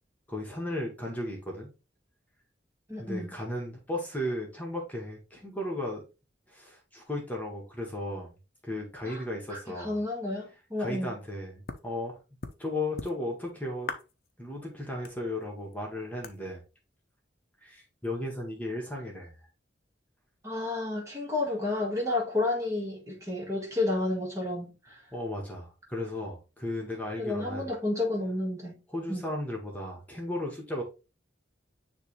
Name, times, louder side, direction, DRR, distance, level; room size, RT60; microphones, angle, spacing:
voice 1, 0.3-1.7 3.0-6.1 6.5-8.3 8.6-10.0 10.8-12.2 12.6-13.9 14.4-16.6 17.6-19.3 25.1-27.7 28.9-30.8, left 1 dB, 10° left, 1.9 m, -35 dB
voice 2, 2.9-3.3 9.0-9.2 9.5-11.1 20.4-25.0 27.2-28.8 29.1-29.2, left 2 dB, 15° right, 1.7 m, -31 dB
sound 1, 11.7-11.9 12.4-12.6 13.0-13.5 13.8-14.3 14.6-14.7 15.0-15.8 16.2-16.4, left 3 dB, 55° left, 0.9 m, -39 dB
9.8 x 3.3 x 3.2 m
head